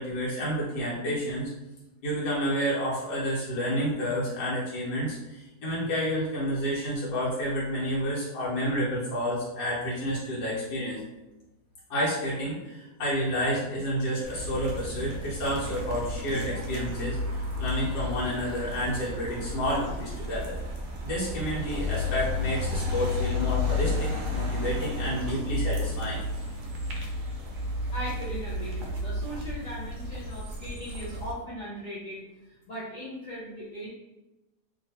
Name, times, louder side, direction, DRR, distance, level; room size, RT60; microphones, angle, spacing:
voice 1, 0.0-1.5 2.0-11.0 11.9-20.6 21.0-26.2, equal, 90° left, -7 dB, 1.6 m, -30 dB
sound 1, 14.2-31.3, left 2 dB, 65° right, 0.7 m, -32 dB
voice 2, 27.9-32.2 32.6-33.9, equal, 70° left, -8 dB, 0.4 m, -38 dB
2.9 x 2.8 x 2.8 m, 1.0 s
omnidirectional pair, 1.7 m